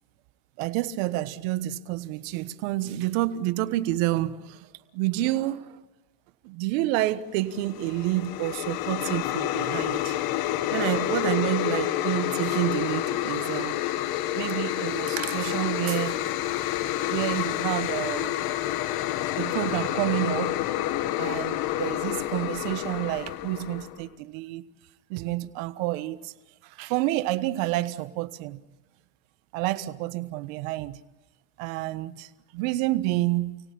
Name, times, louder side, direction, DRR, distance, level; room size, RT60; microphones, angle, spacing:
voice 1, 0.6-4.7 4.9-5.8 6.4-10.1 10.7-13.8 14.3-16.2 17.1-18.3 19.4-20.6 21.2-24.6 25.1-26.3 26.6-28.6 29.5-31.0 31.6-33.6, right 15 dB, 75° right, 1.4 m, -29 dB
sound 1, 7.6-24.0, left 14 dB, 60° left, 1.4 m, -29 dB
29.5 x 18.0 x 8.6 m
supercardioid pair, 90°, 40 cm